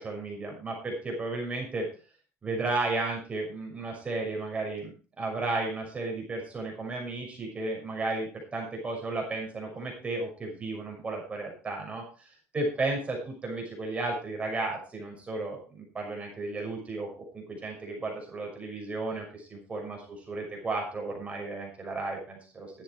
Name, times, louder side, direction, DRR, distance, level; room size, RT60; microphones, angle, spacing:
voice 1, 0.0-1.8 2.4-12.3 12.5-17.1 17.3-20.0 20.3-22.8, right 2 dB, 25° right, 0 dB, 6.1 m, -34 dB
12.5 x 10.0 x 4.8 m, 0.36 s
cardioid pair, 125°, 5 cm